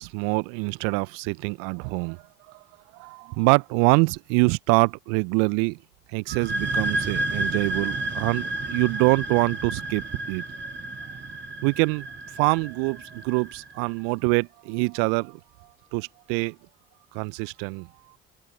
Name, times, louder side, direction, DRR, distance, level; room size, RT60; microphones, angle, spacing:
voice 1, 0.0-2.6 2.9-5.8 6.1-10.4 11.6-12.1 12.3-15.4 15.9-16.6 17.1-17.9, right 37 dB, 65° right, 1.0 m, -25 dB
sound 1, 6.3-13.7, right 2 dB, 35° right, 3.3 m, -31 dB
figure-of-eight pair, 50°, 30 cm